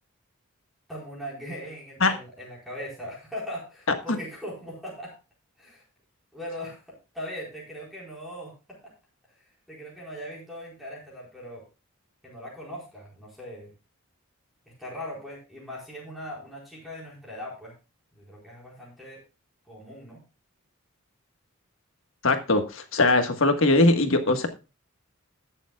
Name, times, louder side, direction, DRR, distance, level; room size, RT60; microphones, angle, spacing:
voice 1, 0.9-5.1 5.6-5.8 6.3-8.9 9.7-11.6 12.2-13.7 14.8-17.7 18.2-19.2 19.7-20.2, equal, ahead, -4 dB, 4.5 m, -40 dB
voice 2, 22.2-24.5, left 2 dB, 65° left, 6 dB, 1.5 m, -21 dB
20.0 x 7.1 x 2.3 m, 0.30 s
head